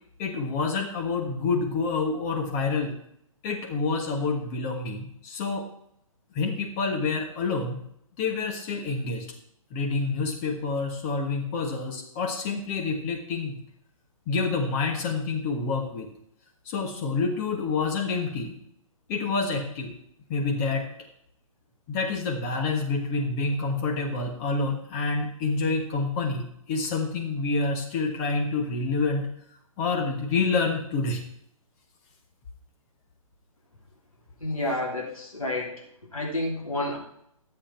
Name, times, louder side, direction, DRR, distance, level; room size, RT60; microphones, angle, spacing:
voice 1, 0.2-3.0 3.4-5.7 6.3-7.8 8.2-9.3 9.7-13.5 14.3-16.1 16.6-18.6 19.1-19.9 20.3-20.9 21.9-29.3 29.8-31.2, left 4 dB, 25° left, 2 dB, 1.4 m, -28 dB
voice 2, 34.4-35.7 36.1-37.0, left 1 dB, 80° left, -2 dB, 3.1 m, -29 dB
13.0 x 7.7 x 4.4 m, 0.73 s
figure-of-eight pair, 130°, 18 cm